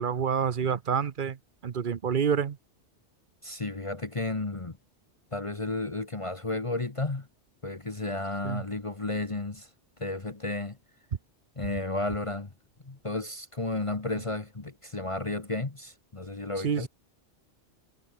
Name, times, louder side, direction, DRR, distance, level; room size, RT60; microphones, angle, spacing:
voice 1, 0.0-1.4 1.6-2.6 8.4-8.6 16.6-16.9, right 7 dB, 50° right, 0.9 m, -27 dB
voice 2, 3.4-4.8 5.3-7.3 7.6-9.7 10.0-10.8 11.6-12.5 12.8-16.9, left 2 dB, 30° left, 1.3 m, -33 dB
omnidirectional pair, 1.2 m